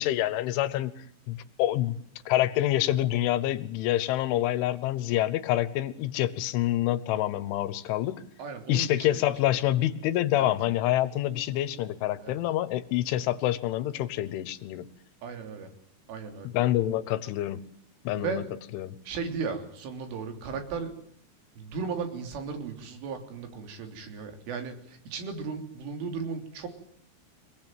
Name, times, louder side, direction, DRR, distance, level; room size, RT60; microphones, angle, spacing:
voice 1, 0.0-2.0 2.3-8.2 8.7-14.9 16.5-17.6 18.1-18.4 18.7-19.0, left 14 dB, 80° left, 15 dB, 3.6 m, -27 dB
voice 2, 8.4-9.2 10.4-10.5 12.2-12.4 15.2-15.7 16.1-16.5 18.1-18.5 19.1-20.9 21.6-26.7, right 5 dB, 90° right, 5 dB, 5.9 m, -36 dB
25.5 x 19.0 x 9.2 m, 0.65 s
omnidirectional pair, 5.5 m